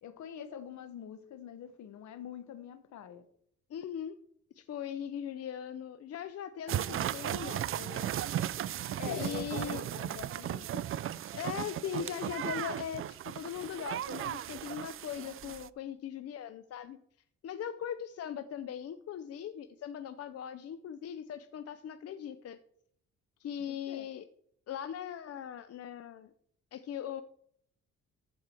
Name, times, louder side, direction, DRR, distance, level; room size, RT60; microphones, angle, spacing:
voice 1, 0.0-3.2 9.0-10.9 23.6-24.1, left 9 dB, 70° left, 1.1 m, -45 dB
voice 2, 3.7-4.2 4.5-8.1 9.1-9.8 11.4-17.0 17.4-22.6 23.4-24.3 24.7-26.3 26.7-27.2, left 9 dB, 55° left, 0.6 m, -40 dB
sound 1, 6.7-15.7, right 11 dB, 45° right, 0.4 m, -36 dB
14.5 x 4.9 x 4.4 m
cardioid pair, 90°, 30 cm